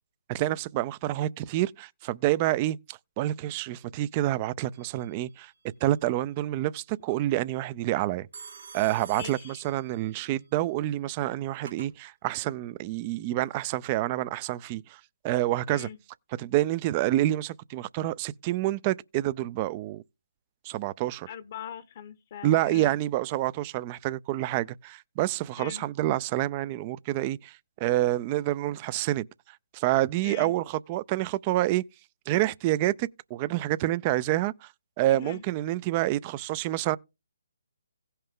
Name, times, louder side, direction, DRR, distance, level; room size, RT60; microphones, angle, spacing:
voice 1, 0.3-5.5 5.8-8.3 8.7-15.9 16.4-20.0 20.6-21.3 22.4-29.3 29.7-31.8 32.3-34.7 35.0-37.0, right 15 dB, 30° right, 0.4 m, -28 dB
Telephone, 4.7-5.3 8.3-10.2 11.2-11.9, right 6 dB, 65° right, 1.9 m, -47 dB
voice 2, 9.1-9.6 15.7-16.0 21.3-23.0 25.6-25.8 30.2-30.5 35.1-35.4, left 8 dB, 40° left, 0.9 m, -41 dB
16.5 x 5.5 x 3.7 m
figure-of-eight pair, 145°, 0 cm